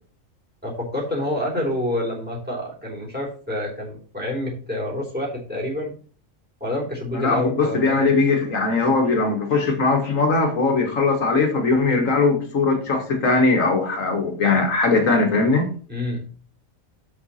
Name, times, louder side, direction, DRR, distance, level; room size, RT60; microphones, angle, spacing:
voice 1, 0.6-5.9 6.6-8.1 15.9-16.2, left 1 dB, 5° right, 3.4 m, -28 dB
voice 2, 7.1-15.7, left 3 dB, 80° left, 1.9 m, -20 dB
7.9 x 6.6 x 4.2 m
omnidirectional pair, 1.4 m